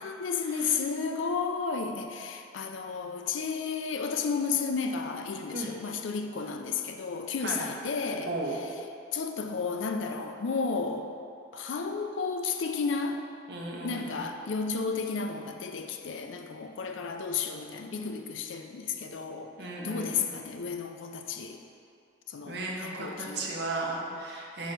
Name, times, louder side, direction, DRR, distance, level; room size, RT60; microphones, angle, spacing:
voice 1, 0.0-8.3 9.1-11.1 11.5-13.3 13.8-19.5 19.8-21.6 22.3-23.5, left 5 dB, 80° left, 5 dB, 0.5 m, -32 dB
voice 2, 8.3-8.6 13.5-14.3 19.6-20.3 22.4-24.7, right 2 dB, 60° right, -2 dB, 0.9 m, -35 dB
4.7 x 4.4 x 5.2 m, 2.5 s
head